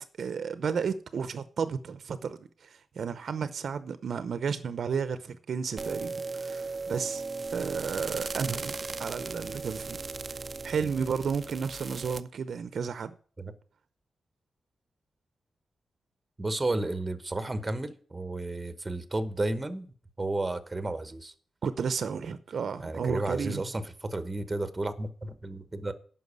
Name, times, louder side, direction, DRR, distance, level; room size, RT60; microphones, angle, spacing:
voice 1, 0.2-7.2 7.5-8.7 9.0-10.0 10.6-13.2 21.6-23.6, right 6 dB, 65° right, 0.7 m, -32 dB
sound 1, 5.8-12.2, right 4 dB, 35° right, 0.5 m, -37 dB
voice 2, 16.4-21.3 22.8-25.9, right 2 dB, 15° right, 0.9 m, -32 dB
9.4 x 5.8 x 8.3 m
wide cardioid pair, 135°, 0 cm